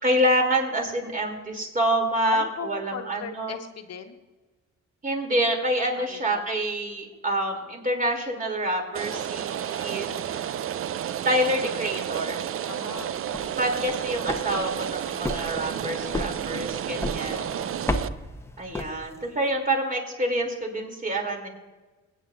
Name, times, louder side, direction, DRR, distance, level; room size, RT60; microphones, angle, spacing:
voice 1, 0.0-3.6 5.0-10.1 11.2-12.4 13.6-17.5 18.6-21.5, right 1 dB, 30° right, 2 dB, 3.0 m, -27 dB
voice 2, 2.3-4.1 6.0-6.5 10.1-10.6 12.6-13.7 17.2-17.9 18.6-18.8, left 7 dB, 55° left, 6 dB, 1.2 m, -39 dB
Rain, 8.9-18.1, right 10 dB, 45° right, 0.5 m, -31 dB
sound 1, 13.1-19.4, left 1 dB, 10° left, 0.9 m, -34 dB
21.5 x 9.2 x 2.6 m, 1.2 s
cardioid pair, 90°, 30 cm